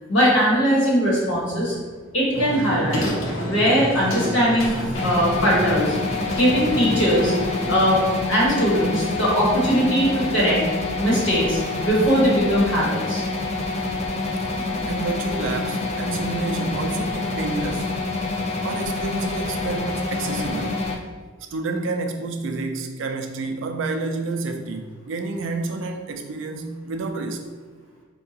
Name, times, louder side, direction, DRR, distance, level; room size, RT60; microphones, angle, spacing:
voice 1, 0.1-1.8 2.1-3.1 3.4-4.7 5.0-5.9 6.3-7.3 7.7-8.0 8.3-10.6 11.0-13.2, equal, 70° left, -6 dB, 1.3 m, -20 dB
sound 1, 2.3-8.1, equal, 85° left, 0.7 m, -30 dB
sound 2, 4.9-20.9, left 3 dB, 35° left, 0.3 m, -27 dB
voice 2, 14.9-17.9 18.6-20.9 21.5-27.4, right 3 dB, 65° right, 6 dB, 0.4 m, -29 dB
4.5 x 2.3 x 2.8 m, 1.4 s
head